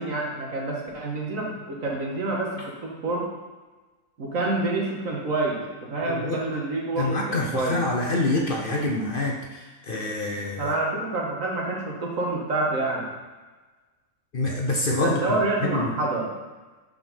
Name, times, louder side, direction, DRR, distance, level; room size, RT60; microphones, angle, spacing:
voice 1, 0.0-3.3 4.2-7.8 10.6-13.1 15.0-16.3, right 2 dB, 70° right, -2 dB, 1.9 m, -27 dB
voice 2, 6.0-6.4 7.0-10.7 14.3-16.0, left 2 dB, 45° left, 0 dB, 0.8 m, -26 dB
6.4 x 5.6 x 5.3 m, 1.3 s
omnidirectional pair, 1.5 m